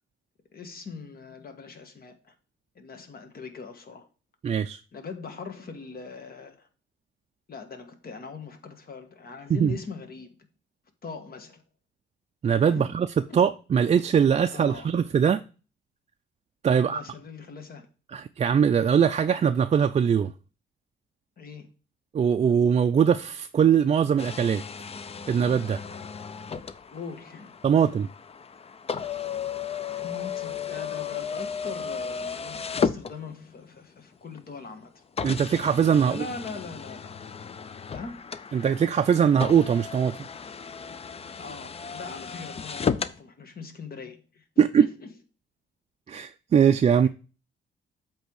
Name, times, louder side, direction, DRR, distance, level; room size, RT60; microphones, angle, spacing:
voice 1, 0.5-2.3 2.7-4.1 4.9-6.7 7.5-10.4 11.0-11.6 12.7-12.9 13.3-13.4 14.5-15.0 16.7-17.9 21.4-21.7 26.9-27.8 30.0-35.0 36.0-37.2 37.9-38.3 41.4-44.4 44.8-45.1 47.0-47.1, left 4 dB, 50° left, 1.6 m, -41 dB
voice 2, 4.4-4.8 9.6-9.8 12.4-13.1 13.3-15.4 16.6-17.0 18.1-20.3 22.1-24.6 25.3-25.8 27.6-28.1 35.2-36.2 38.5-40.2 44.6-44.9 46.1-47.1, right 7 dB, 35° right, 0.4 m, -21 dB
sound 1, 24.2-33.7 34.4-34.5 35.2-43.2, left 6 dB, 30° left, 0.5 m, -34 dB
8.0 x 3.5 x 6.3 m
cardioid pair, 90°, 20 cm